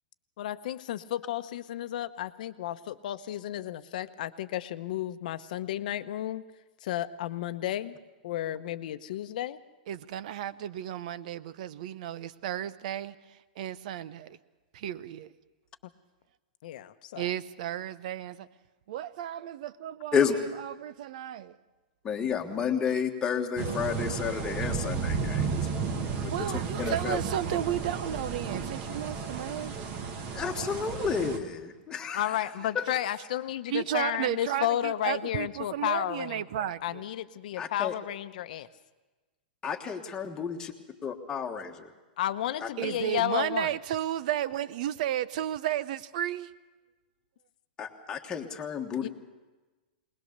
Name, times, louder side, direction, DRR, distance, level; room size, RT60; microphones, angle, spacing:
voice 1, 0.4-6.4 6.8-8.0 8.2-9.6 16.6-17.3 32.1-38.7 42.2-43.8 49.0-49.1, left 12 dB, 60° left, 0.9 m, -32 dB
voice 2, 9.9-13.1 13.6-14.4 14.7-15.3 17.2-18.5 18.9-20.2 20.6-21.5 26.3-29.7 33.7-37.0 42.8-46.5, right 11 dB, 55° right, 0.7 m, -33 dB
voice 3, 22.0-25.5 26.2-26.5 26.8-27.2 30.3-32.3 32.7-32.8 37.6-37.9 39.6-40.7 41.0-41.9 47.8-49.1, left 6 dB, 15° left, 1.5 m, -31 dB
sound 1, 23.6-31.4, right 5 dB, 35° right, 1.8 m, -33 dB
20.5 x 20.5 x 6.7 m
supercardioid pair, 160°, 5 cm